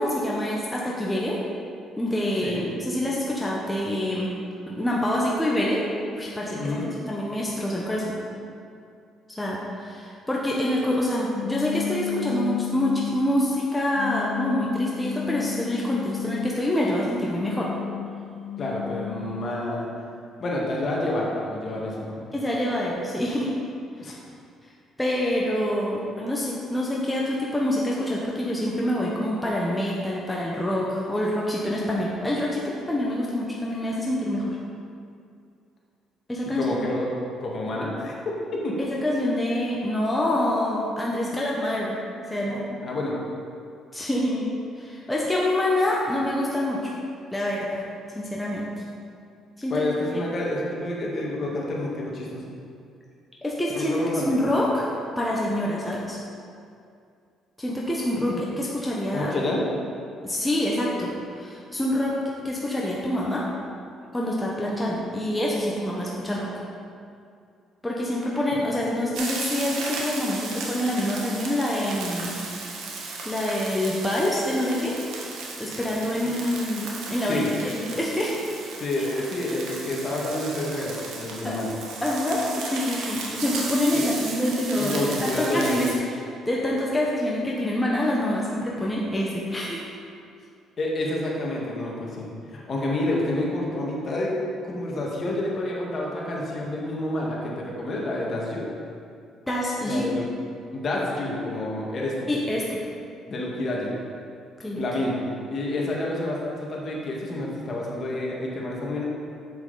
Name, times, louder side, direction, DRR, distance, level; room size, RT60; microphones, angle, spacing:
voice 1, 0.0-1.4 2.0-4.3 4.7-5.8 6.1-6.8 7.1-8.1 9.4-17.7 22.3-23.5 25.0-34.6 36.3-36.8 39.0-42.0 42.3-42.6 43.9-44.5 44.8-46.9 47.3-47.8 48.1-48.7 49.6-49.7 53.4-53.9 54.3-56.2 57.6-58.3 58.6-59.3 60.2-62.1 62.4-63.4 64.1-66.5 67.8-72.3 73.2-74.9 75.6-78.3 81.4-81.6 82.0-85.9 86.5-89.8 99.5-100.0 102.3-102.8 104.6-104.8, left 1 dB, 10° left, -4 dB, 1.1 m, -26 dB
voice 2, 6.5-7.0 18.6-19.9 20.4-22.2 24.0-24.2 36.5-37.1 37.4-38.2 38.5-38.8 42.5-43.2 49.7-52.5 53.7-54.5 59.1-59.6 76.2-76.3 77.3-77.5 78.8-81.7 83.9-84.1 84.8-85.8 90.8-94.3 94.6-98.7 99.8-100.3 100.7-102.3 103.3-103.9 104.8-105.2 105.5-109.1, left 1 dB, 45° left, -3 dB, 1.8 m, -29 dB
Blown Bottle Two, 11.3-13.3 13.9-16.6 17.2-19.5, left 9 dB, 65° left, 0.4 m, -33 dB
sound 1, 69.1-86.0, right 3 dB, 80° right, 1.3 m, -35 dB
7.6 x 7.0 x 4.1 m, 2.4 s
cardioid pair, 100°, 0 cm